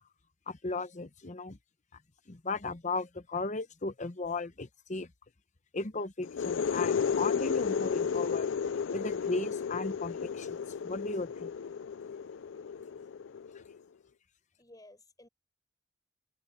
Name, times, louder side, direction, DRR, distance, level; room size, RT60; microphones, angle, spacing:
voice 1, 0.5-1.6 2.3-5.1 5.7-8.5 8.9-10.6 10.8-11.5, left 3 dB, 40° left, 1.0 m, -36 dB
sound 1, 6.2-13.8, left 6 dB, 80° left, 0.4 m, -33 dB
voice 2, 14.6-15.3, left 1 dB, 20° left, 6.0 m, -58 dB
head